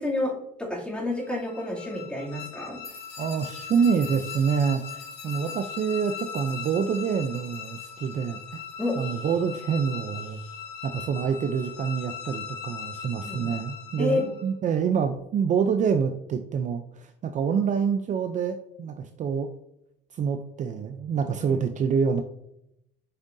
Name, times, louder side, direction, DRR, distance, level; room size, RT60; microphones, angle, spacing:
voice 1, 0.0-2.8 8.8-8.9 13.2-13.5 14.0-14.3 21.3-21.6, left 2 dB, 5° left, -4 dB, 2.6 m, -29 dB
sound 1, 1.1-14.5, left 7 dB, 70° left, 1.1 m, -40 dB
sound 2, 2.8-10.6, left 4 dB, 35° left, 2.7 m, -50 dB
voice 2, 3.2-8.6 9.0-10.4 10.8-19.5 20.1-22.2, right 6 dB, 45° right, 7 dB, 0.5 m, -27 dB
7.8 x 6.1 x 2.7 m, 0.78 s
cardioid pair, 110°, 17 cm